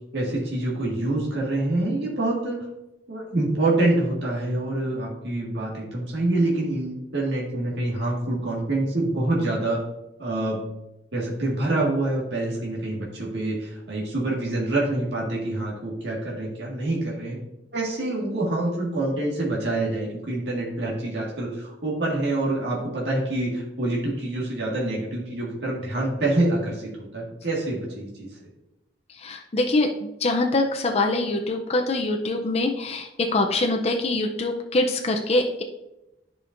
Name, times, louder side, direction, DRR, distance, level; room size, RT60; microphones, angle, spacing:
voice 1, 0.1-2.6 3.1-9.8 10.2-10.6 11.1-17.4 17.7-28.3, right 2 dB, 70° right, -4 dB, 1.7 m, -26 dB
voice 2, 29.1-35.6, left 2 dB, 35° left, 3 dB, 0.5 m, -24 dB
10.5 x 5.1 x 2.5 m, 0.92 s
head